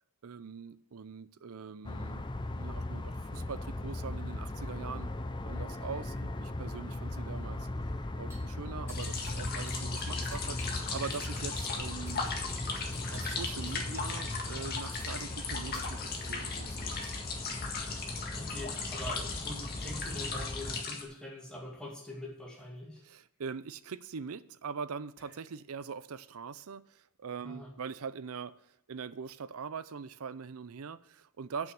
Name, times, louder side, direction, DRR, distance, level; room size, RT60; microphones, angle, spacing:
voice 1, 0.2-5.1 5.4-7.7 8.2-12.3 12.9-16.9 17.4-17.5 23.0-28.6 28.9-31.7, right 5 dB, 70° right, 0.5 m, -42 dB
City Noise Inside Apartment, 1.8-20.8, left 2 dB, 20° left, 0.5 m, -38 dB
sound 1, 8.2-8.5 8.8-10.9 11.1-11.5 12.1-12.3 12.9-13.4 13.7-13.9 14.9-17.2 18.2-19.3 20.5-20.6 20.9-21.5 22.0-22.1 22.3-22.8 23.3-25.8, right 2 dB, 15° right, 3.2 m, -58 dB
sound 2, 8.9-21.0, left 4 dB, 45° left, 1.8 m, -38 dB
voice 2, 18.3-23.0 27.4-27.7, left 1 dB, 5° left, 2.6 m, -43 dB
8.7 x 6.2 x 7.0 m
head